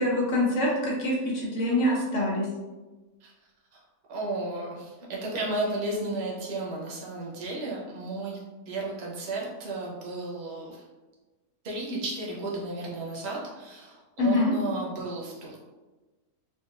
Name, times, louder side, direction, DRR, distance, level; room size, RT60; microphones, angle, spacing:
voice 1, 0.0-2.5 14.2-14.5, left 1 dB, 55° left, -3 dB, 1.2 m, -25 dB
voice 2, 4.1-8.4 8.7-10.8 11.6-15.6, right 2 dB, 50° right, -3 dB, 0.9 m, -33 dB
4.2 x 2.4 x 2.4 m, 1.2 s
omnidirectional pair, 1.6 m